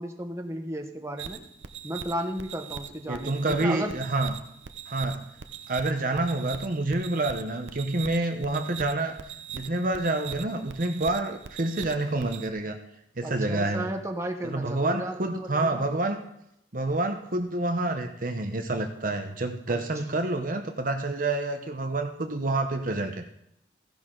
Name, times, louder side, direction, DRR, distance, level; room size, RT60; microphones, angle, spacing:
voice 1, 0.0-1.4 1.8-4.0 6.1-6.2 13.2-15.8 19.7-19.8, right 1 dB, 15° right, 3 dB, 1.1 m, -34 dB
sound 1, 1.2-12.5, right 7 dB, 75° right, 0.8 m, -41 dB
voice 2, 3.1-4.4 4.9-5.3 5.7-9.2 9.5-12.8 13.2-13.9 14.4-16.2 16.7-23.2, right 2 dB, 45° right, 5 dB, 1.0 m, -28 dB
15.0 x 10.5 x 3.9 m, 0.78 s
head